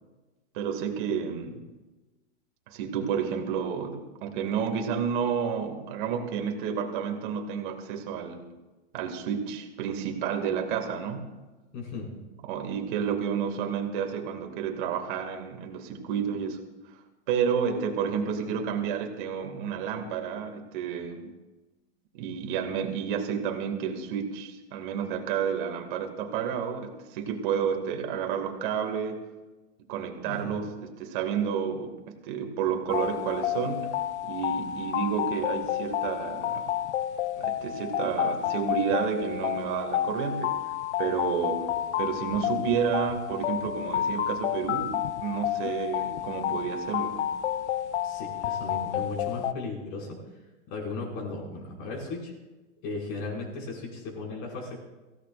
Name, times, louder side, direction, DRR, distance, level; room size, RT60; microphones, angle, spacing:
voice 1, 0.5-1.7 2.7-8.5 8.9-11.3 12.4-16.6 17.3-21.3 22.1-29.3 29.9-34.0 34.2-36.6 37.4-40.6 41.0-47.2, right 7 dB, 45° right, 4 dB, 2.3 m, -30 dB
voice 2, 11.7-12.1 30.2-30.6 48.0-50.2 50.7-52.3 52.8-54.8, left 3 dB, 40° left, -1 dB, 5.8 m, -36 dB
sound 1, 32.9-49.5, left 11 dB, 70° left, 0.9 m, -30 dB
23.5 x 16.5 x 2.5 m, 1.1 s
supercardioid pair, 160°, 36 cm